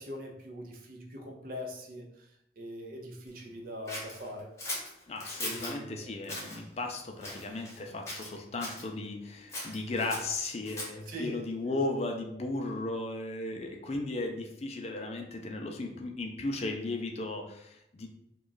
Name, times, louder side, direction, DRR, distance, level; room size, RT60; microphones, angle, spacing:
voice 1, 0.0-2.1 2.6-4.5 5.4-6.1 11.1-11.4, equal, 50° right, 1 dB, 0.6 m, -42 dB
Scissors, 3.9-5.8 6.2-6.6 7.2-7.8 8.1-8.9 9.5-11.1, left 1 dB, 15° left, 0.9 m, -39 dB
voice 2, 5.1-18.1, left 2 dB, 35° left, 3 dB, 0.4 m, -36 dB
3.1 x 2.3 x 3.9 m, 0.79 s
head